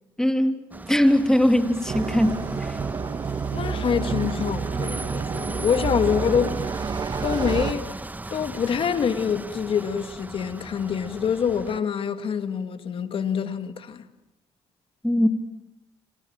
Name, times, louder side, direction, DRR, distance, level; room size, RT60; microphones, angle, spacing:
voice 1, 0.2-2.8 15.0-15.3, left 1 dB, 5° left, 2.9 m, -21 dB
sound 1, 0.7-11.8, right 2 dB, 15° right, 1.4 m, -38 dB
sound 2, 1.9-7.7, right 5 dB, 40° right, 2.1 m, -29 dB
voice 2, 3.5-6.6 7.2-8.0 8.3-14.0, left 7 dB, 55° left, 2.3 m, -26 dB
28.0 x 27.0 x 7.5 m
supercardioid pair, 75°, 11 cm